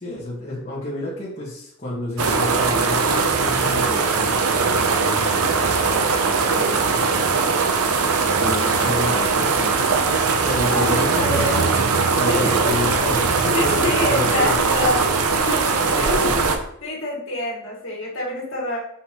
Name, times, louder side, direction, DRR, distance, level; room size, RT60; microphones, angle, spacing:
voice 1, 0.0-7.9 8.4-9.8 10.4-11.7 12.2-15.0 15.8-16.5, left 1 dB, 35° left, -7 dB, 1.5 m, -31 dB
sound 1, 2.2-16.6, right 4 dB, 85° right, 0.7 m, -20 dB
voice 2, 8.8-9.5 10.7-11.7 12.2-12.6 13.5-16.4 16.8-18.8, left 2 dB, 60° left, -4 dB, 2.0 m, -27 dB
5.9 x 5.4 x 3.0 m, 0.73 s
head